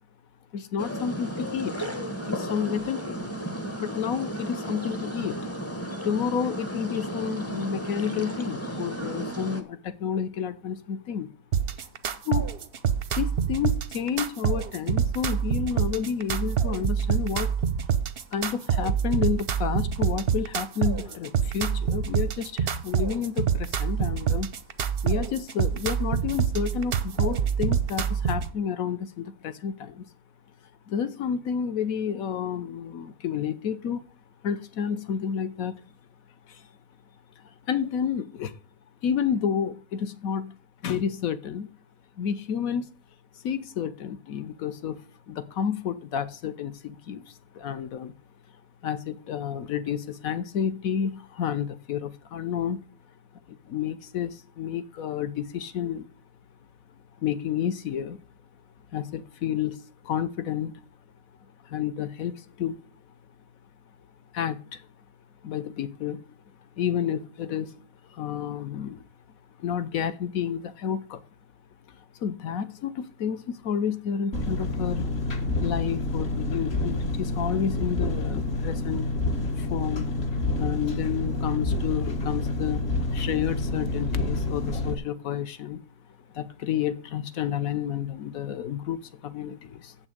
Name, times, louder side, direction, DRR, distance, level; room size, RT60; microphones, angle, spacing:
voice 1, 0.5-1.8 2.3-3.2 3.8-5.4 6.0-11.3 12.2-12.5 13.1-17.5 18.3-24.5 25.0-30.1 30.9-34.0 34.4-35.8 36.5-36.6 37.7-38.5 39.0-40.5 40.8-41.7 42.2-42.9 43.4-45.0 45.3-48.1 48.8-52.8 53.5-56.1 57.2-58.2 58.9-60.8 61.6-62.8 64.3-64.8 65.4-66.2 66.8-67.8 68.1-69.0 69.6-71.2 72.2-75.1 75.6-79.1 79.6-80.1 80.6-85.8 86.3-89.9, left 8 dB, 60° left, 1.2 m, -30 dB
sound 1, 0.8-9.6, right 1 dB, 10° left, 0.9 m, -34 dB
sound 2, 11.5-28.5, right 8 dB, 50° right, 0.7 m, -26 dB
Engine, 74.3-84.9, left 2 dB, 40° left, 1.4 m, -28 dB
7.9 x 6.2 x 7.9 m
omnidirectional pair, 1.8 m